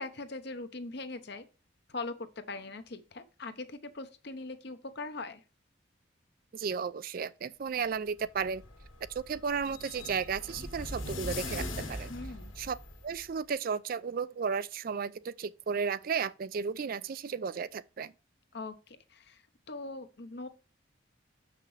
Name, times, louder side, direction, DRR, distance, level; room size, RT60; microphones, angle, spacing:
voice 1, 0.0-1.5 1.9-5.4 12.1-12.5 18.5-19.4 19.7-20.5, left 3 dB, 55° left, 0.9 m, -41 dB
voice 2, 6.5-8.6 9.1-12.1 12.6-12.8 13.0-18.1, right 6 dB, 45° right, 0.4 m, -34 dB
sound 1, 8.2-13.2, left 2 dB, 85° left, 1.9 m, -41 dB
6.9 x 5.9 x 3.2 m
head